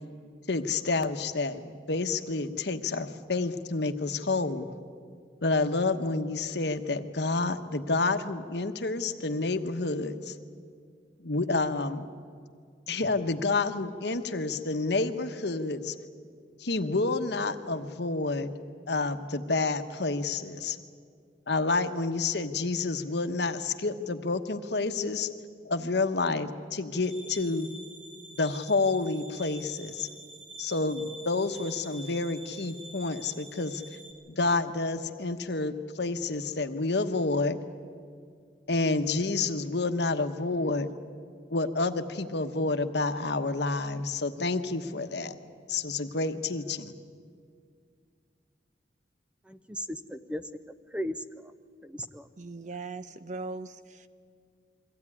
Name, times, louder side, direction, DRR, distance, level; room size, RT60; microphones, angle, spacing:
voice 1, 0.5-4.7 5.4-10.3 11.2-12.0 12.9-15.9 16.6-18.5 18.9-20.8 21.5-25.3 25.6-27.7 28.3-30.1 30.6-33.8 34.3-37.6 38.7-40.9 41.5-45.3 45.7-46.9, left 3 dB, 65° left, 9 dB, 1.1 m, -29 dB
sound 1, 27.0-34.1, right 1 dB, 65° right, 3.0 m, -47 dB
voice 2, 49.5-50.4 50.9-51.5 51.8-52.3, equal, 5° right, 11 dB, 0.6 m, -36 dB
voice 3, 52.4-54.1, right 3 dB, 45° right, 12 dB, 0.8 m, -39 dB
23.0 x 16.0 x 9.8 m, 2.2 s
head